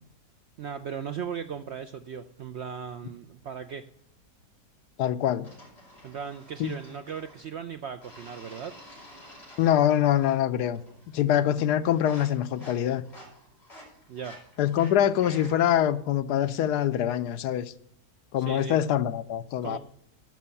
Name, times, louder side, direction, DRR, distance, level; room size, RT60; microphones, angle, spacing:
voice 1, 0.6-3.9 6.0-8.8 14.1-14.4 18.4-18.8 19.6-19.8, right 7 dB, 70° right, 0.6 m, -37 dB
voice 2, 5.0-5.5 6.6-6.8 9.6-10.8 11.1-13.0 14.6-17.7 18.3-19.8, left 10 dB, 85° left, 1.2 m, -24 dB
sound 1, 5.4-7.5 8.0-10.5 10.7-11.2 11.5-15.8, equal, 40° left, 4.9 m, -50 dB
12.0 x 5.5 x 7.0 m
omnidirectional pair, 1.7 m